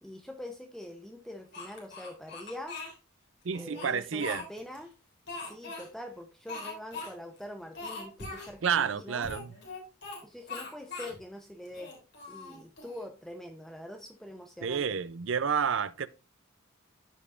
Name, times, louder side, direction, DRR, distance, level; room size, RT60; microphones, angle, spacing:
voice 1, 0.0-2.8 3.5-4.9 5.4-9.3 10.2-11.9 12.3-15.0, left 1 dB, ahead, 0.7 m, -44 dB
Speech, 1.5-2.9 3.5-4.8 5.3-5.9 6.5-7.1 7.4-7.5 7.7-8.5 9.2-10.2 10.5-11.2 11.7-13.0, left 3 dB, 55° left, 3.6 m, -41 dB
voice 2, 3.4-4.4 8.6-9.5 14.6-16.1, right 7 dB, 70° right, 0.5 m, -30 dB
14.0 x 5.2 x 2.5 m
head